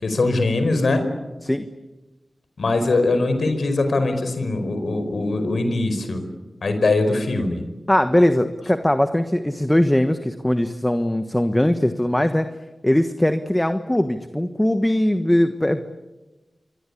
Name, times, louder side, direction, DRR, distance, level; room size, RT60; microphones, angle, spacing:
voice 1, 0.0-1.0 2.6-6.2 6.6-7.6, left 2 dB, 80° left, 8 dB, 5.1 m, -21 dB
voice 2, 7.9-12.5 12.8-15.8, left 1 dB, 15° left, 9 dB, 1.4 m, -20 dB
28.0 x 23.0 x 8.6 m, 1.1 s
wide cardioid pair, 70°, 0 cm